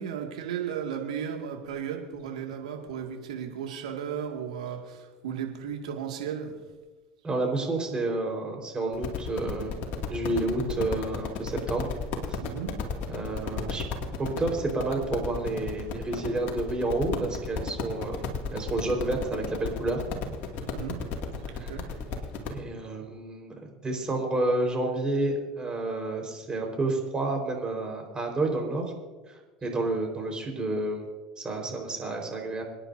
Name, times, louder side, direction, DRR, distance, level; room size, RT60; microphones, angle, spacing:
voice 1, 0.0-6.6 12.4-12.7 20.6-21.0 21.5-21.8, right 8 dB, 85° right, 1 dB, 2.2 m, -35 dB
voice 2, 7.2-9.8 10.1-11.9 12.3-12.4 13.1-13.8 14.2-20.0 21.5-21.8 22.5-28.9 29.3-31.0 31.4-32.6, right 2 dB, 25° right, 2 dB, 4.6 m, -30 dB
sound 1, 8.9-22.6, left 5 dB, 55° left, 2.4 m, -34 dB
26.0 x 10.0 x 2.8 m, 1.3 s
hypercardioid pair, 80°, 4 cm